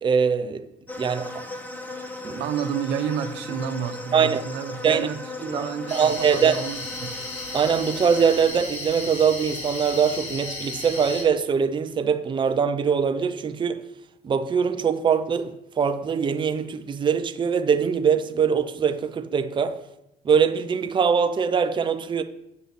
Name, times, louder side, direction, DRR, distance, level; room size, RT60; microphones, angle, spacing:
voice 1, 0.0-0.7 1.0-1.3 2.2-2.4 4.1-4.4 4.8-5.1 5.4-6.6 7.5-13.8 14.2-19.8 20.2-22.2, right 6 dB, 30° right, 0.6 m, -22 dB
sound 1, 0.9-8.5, left 2 dB, 10° left, 1.3 m, -37 dB
voice 2, 2.4-7.2, right 8 dB, 90° right, 0.9 m, -30 dB
sound 2, 5.9-11.2, left 2 dB, 40° left, 3.4 m, -35 dB
7.8 x 5.5 x 7.7 m
cardioid pair, 110°, 17 cm